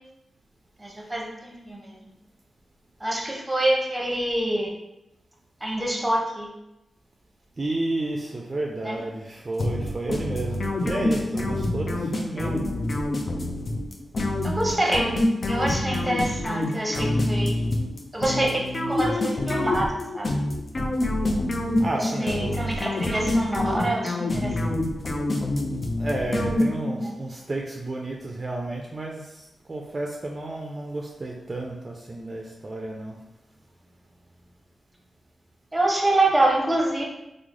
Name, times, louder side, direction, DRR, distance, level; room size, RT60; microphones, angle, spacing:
voice 1, 0.8-2.0 3.0-4.7 5.6-6.5 8.8-9.0 14.4-15.1 15.5-17.6 18.1-20.4 22.0-24.6 35.7-37.0, right 1 dB, 15° right, -1 dB, 0.8 m, -26 dB
voice 2, 7.6-12.8 21.8-22.6 26.0-33.2, right 2 dB, 40° right, 0 dB, 0.4 m, -31 dB
sound 1, 9.6-27.1, left 1 dB, 55° left, 0.5 m, -26 dB
3.0 x 2.0 x 3.7 m, 0.92 s
cardioid pair, 55°, 0 cm